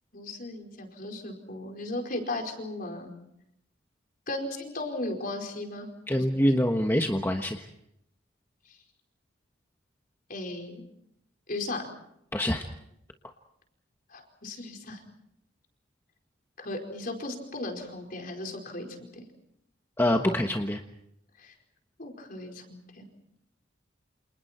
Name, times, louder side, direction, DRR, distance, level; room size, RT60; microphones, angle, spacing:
voice 1, 0.1-3.1 4.3-5.9 6.2-6.3 10.3-10.8 11.5-11.9 14.1-15.0 16.6-18.9 21.4-21.5 22.0-23.1, left 2 dB, 50° left, 3 dB, 4.9 m, -36 dB
voice 2, 6.1-7.6 12.3-12.6 20.0-20.8, left 1 dB, 10° left, 3 dB, 1.3 m, -25 dB
29.5 x 28.0 x 4.5 m, 0.76 s
head